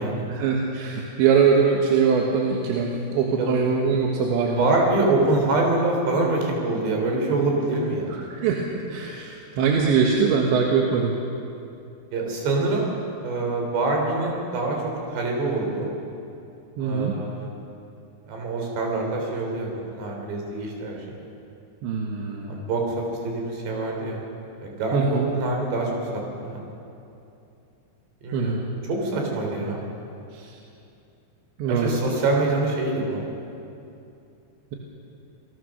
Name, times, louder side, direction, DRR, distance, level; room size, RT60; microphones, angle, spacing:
voice 1, 0.3-4.7 8.3-11.1 16.8-17.2 21.8-22.6 24.9-25.3 28.3-28.6 30.3-30.5 31.6-31.9, right 6 dB, 85° right, 0 dB, 3.8 m, -22 dB
voice 2, 4.6-8.1 12.1-12.9 13.2-14.8 15.1-15.9 16.8-17.5 18.3-21.1 22.5-22.8 23.2-24.2 24.6-26.0 26.4-26.6 28.2-28.6 28.9-29.8 31.7-33.2, right 2 dB, 70° right, 1 dB, 6.0 m, -25 dB
27.0 x 19.5 x 6.6 m, 2.7 s
omnidirectional pair, 5.0 m